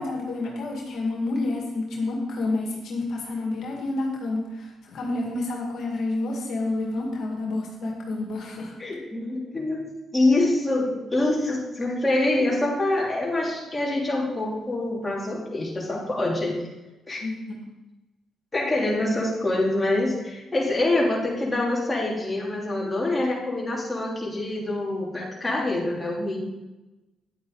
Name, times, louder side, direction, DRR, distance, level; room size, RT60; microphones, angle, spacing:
voice 1, 0.0-8.8 17.2-17.6, left 2 dB, 70° left, 0 dB, 2.1 m, -29 dB
voice 2, 8.8-16.6 17.1-17.2 18.5-26.4, left 2 dB, 15° left, -4 dB, 3.3 m, -25 dB
10.0 x 8.5 x 4.0 m, 1.0 s
cardioid pair, 90°, 0 cm